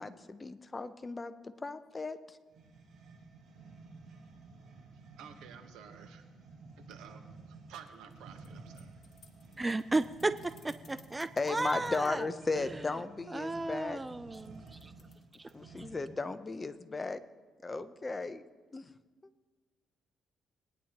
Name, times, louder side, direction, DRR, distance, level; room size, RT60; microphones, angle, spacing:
voice 1, 0.0-2.4 11.4-14.0 15.5-17.2 17.6-18.4 18.7-18.9, left 3 dB, 25° left, 11 dB, 0.7 m, -36 dB
sound 1, 2.5-16.2, right 3 dB, 55° right, 4.5 m, -53 dB
voice 2, 5.2-6.2 6.8-7.2 7.5-9.0, right 8 dB, 90° right, 6 dB, 1.2 m, -52 dB
sound 2, 7.9-12.2 14.3-15.5, left 6 dB, 55° left, 1.9 m, -61 dB
voice 3, 9.6-12.3 13.3-14.9 15.4-15.5, right 2 dB, 15° right, 12 dB, 0.4 m, -34 dB
20.5 x 10.0 x 3.0 m, 1.3 s
cardioid pair, 90°, 0 cm